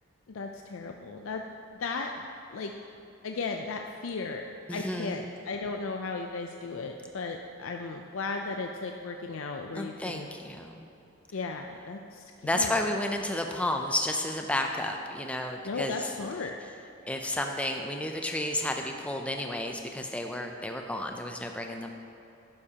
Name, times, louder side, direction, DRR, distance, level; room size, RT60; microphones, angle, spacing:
voice 1, 0.3-1.4 1.8-2.3 2.5-2.9 3.2-4.4 4.7-10.3 11.3-12.7 15.6-16.5, left 4 dB, 75° left, 3 dB, 0.5 m, -35 dB
voice 2, 4.7-5.2 9.7-10.9 12.4-16.1 17.1-21.9, left 1 dB, 5° left, 3 dB, 0.4 m, -31 dB
11.5 x 9.8 x 2.9 m, 2.8 s
head